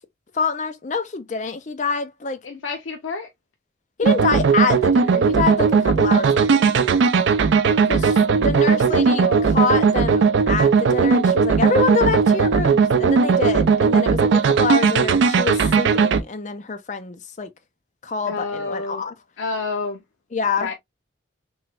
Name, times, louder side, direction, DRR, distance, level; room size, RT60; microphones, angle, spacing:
voice 1, 0.3-2.4 4.0-6.7 7.9-17.5 18.0-19.1 20.3-20.7, left 4 dB, 40° left, 0.5 m, -26 dB
voice 2, 2.4-3.3 8.6-8.8 9.1-9.6 18.3-19.1 19.4-20.0 20.6-20.7, left 3 dB, 90° left, 0.5 m, -29 dB
sound 1, 4.0-16.2, right 5 dB, 75° right, 0.4 m, -17 dB
3.1 x 3.0 x 2.3 m
head